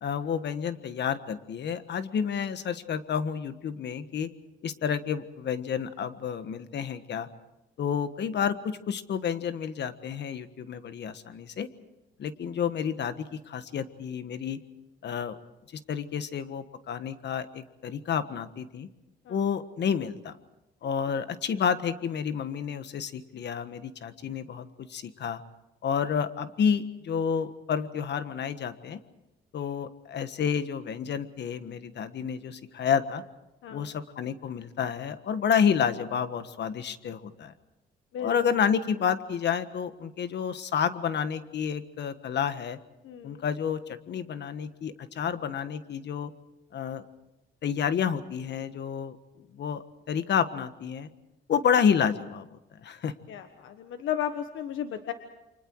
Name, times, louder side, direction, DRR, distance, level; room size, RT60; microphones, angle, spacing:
voice 1, 0.0-4.3 4.6-7.3 7.8-11.7 12.2-14.6 15.0-15.4 15.7-18.9 19.3-20.3 20.8-25.4 25.8-29.0 29.5-33.2 33.7-37.5 38.2-42.8 43.2-46.3 46.7-47.0 47.6-49.2 49.5-51.1 51.5-53.1, left 7 dB, 60° left, 11 dB, 1.5 m, -30 dB
voice 2, 33.6-33.9 38.1-38.4 43.0-43.4 53.3-55.1, left 10 dB, 80° left, 7 dB, 1.4 m, -34 dB
29.5 x 24.5 x 4.8 m, 0.96 s
cardioid pair, 90°, 20 cm